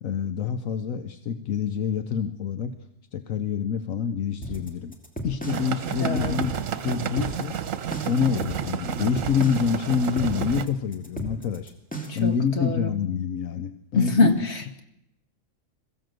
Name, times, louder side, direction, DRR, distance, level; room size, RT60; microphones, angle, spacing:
voice 1, 0.0-2.8 3.1-5.0 5.2-6.5 6.8-7.5 8.1-11.7 12.1-14.3, left 6 dB, 75° left, 10 dB, 1.3 m, -27 dB
sound 1, 4.4-12.3, right 2 dB, 5° left, 2.5 m, -35 dB
sound 2, 5.5-10.7, right 9 dB, 70° right, 1.3 m, -31 dB
voice 2, 6.0-6.4 12.1-12.9 13.9-14.8, left 3 dB, 50° left, 6 dB, 2.3 m, -24 dB
22.0 x 15.0 x 7.8 m, 0.82 s
omnidirectional pair, 1.4 m